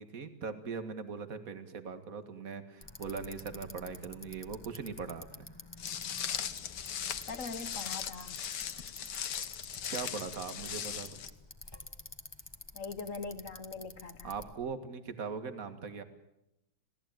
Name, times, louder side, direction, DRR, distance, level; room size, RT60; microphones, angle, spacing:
voice 1, 0.0-5.5 9.9-11.2 14.2-16.0, right 5 dB, 45° right, 9 dB, 2.1 m, -40 dB
Bicycle, 2.8-14.5, left 2 dB, 15° left, 1.5 m, -50 dB
Walk footsteps, 5.8-11.3, left 8 dB, 60° left, 1.6 m, -39 dB
voice 2, 7.3-8.4 12.7-14.3, left 4 dB, 45° left, 11 dB, 1.4 m, -42 dB
27.5 x 17.0 x 9.1 m, 0.88 s
omnidirectional pair, 2.2 m